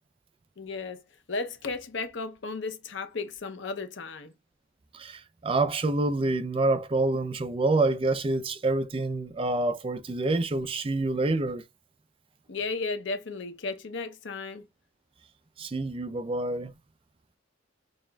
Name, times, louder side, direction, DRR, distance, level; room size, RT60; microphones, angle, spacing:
voice 1, 0.6-4.3 12.5-14.7, left 3 dB, 65° left, 0.6 m, -34 dB
voice 2, 4.9-11.6 15.6-16.7, right 2 dB, 30° right, 0.4 m, -27 dB
6.2 x 2.4 x 2.2 m
head